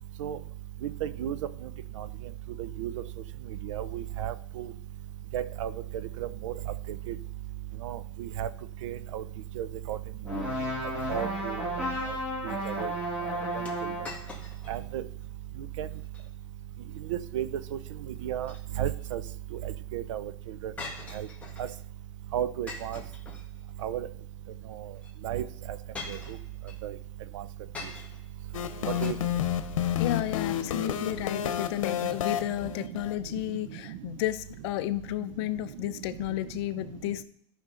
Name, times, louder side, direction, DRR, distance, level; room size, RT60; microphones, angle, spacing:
voice 1, 1.0-1.4 2.8-2.9 3.6-4.7 5.3-5.7 6.4-6.5 7.1-7.2 7.8-8.0 8.4-8.5 8.8-9.2 9.6-10.0 11.1-11.6 12.4-12.9 14.7-15.0 15.8-15.9 17.1-17.5 18.2-18.5 18.8-19.2 19.9-20.2 21.2-21.3 22.3-23.0 23.8-24.1 25.2-25.4 26.1-26.2 26.8-26.9 29.0-29.1, right 11 dB, 70° right, 15 dB, 0.6 m, -32 dB
sound 1, 10.2-14.2, equal, 10° right, 2.7 m, -32 dB
sound 2, 13.7-14.8 15.2-15.3 15.9-16.3 18.2-19.0 20.8-21.8 22.7-23.8 25.0-25.1 25.9-26.8 27.7-28.3 29.0-29.1, left 3 dB, 10° left, 1.7 m, -43 dB
sound 3, 28.5-33.1, left 11 dB, 90° left, 0.9 m, -30 dB
voice 2, 29.9-37.2, left 14 dB, 55° left, 12 dB, 0.6 m, -32 dB
13.5 x 5.4 x 3.8 m, 0.67 s
supercardioid pair, 145°, 17 cm